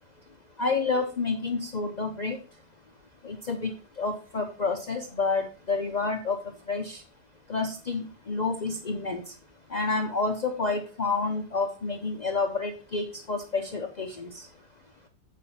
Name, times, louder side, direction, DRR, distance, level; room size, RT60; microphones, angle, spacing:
voice 1, 0.6-2.4 3.2-6.4 6.7-7.0 7.5-9.3 9.7-14.5, left 3 dB, 55° left, 5 dB, 0.4 m, -29 dB
8.3 x 5.3 x 4.1 m, 0.38 s
omnidirectional pair, 1.8 m